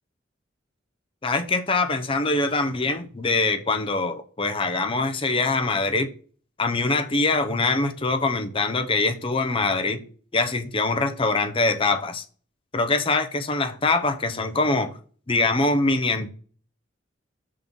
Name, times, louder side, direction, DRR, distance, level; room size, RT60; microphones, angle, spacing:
voice 1, 1.2-6.1 6.6-10.0 10.3-12.2 12.7-14.9 15.3-16.3, left 3 dB, 25° left, 0.6 m, -23 dB
7.5 x 3.7 x 5.3 m
head